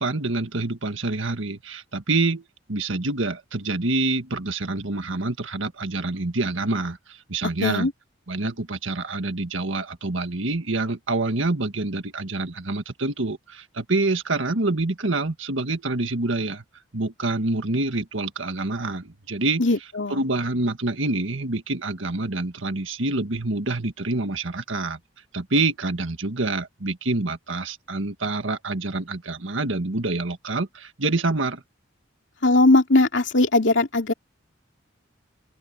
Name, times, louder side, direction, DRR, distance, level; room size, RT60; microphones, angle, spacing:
voice 1, 0.0-2.4 2.7-7.9 8.3-16.6 16.9-19.6 20.1-25.0 25.3-31.6, right 2 dB, 75° right, 1.7 m, -26 dB
voice 2, 19.6-20.2 32.4-34.1, left 2 dB, 65° left, 2.8 m, -19 dB
open air
head